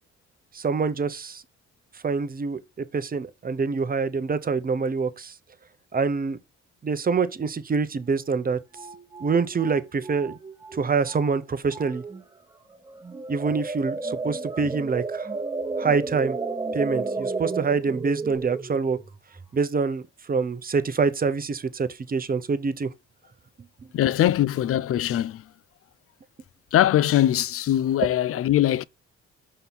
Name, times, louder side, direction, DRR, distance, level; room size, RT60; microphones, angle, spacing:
voice 1, 0.5-1.4 2.0-5.3 5.9-6.4 6.8-8.6 9.2-10.4 10.7-12.0 13.3-15.3 15.8-16.4 16.7-19.0 19.5-20.0 20.3-22.9, right 5 dB, 30° right, 0.7 m, -25 dB
sound 1, 8.0-8.1 8.3-10.8 11.1-11.4 11.7-12.2 12.7-19.6, right 3 dB, 15° right, 1.2 m, -33 dB
voice 2, 23.9-25.4 26.7-28.8, left 12 dB, 50° left, 0.4 m, -21 dB
5.4 x 4.3 x 4.0 m
cardioid pair, 90°, 30 cm